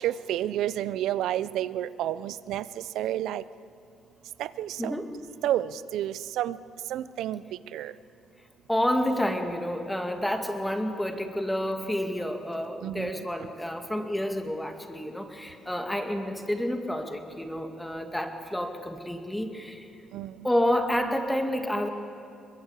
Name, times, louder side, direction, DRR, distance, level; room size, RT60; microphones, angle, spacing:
voice 1, 0.0-2.6 3.0-3.4 4.4-5.0 5.4-6.6 6.9-7.4 7.7-7.9 12.8-13.2 20.1-20.3, right 12 dB, 85° right, 16 dB, 0.6 m, -30 dB
voice 2, 4.8-5.1 8.7-19.9 20.4-21.9, left 1 dB, 5° left, 5 dB, 2.3 m, -29 dB
23.0 x 21.5 x 8.3 m, 2.6 s
cardioid pair, 90°, 0 cm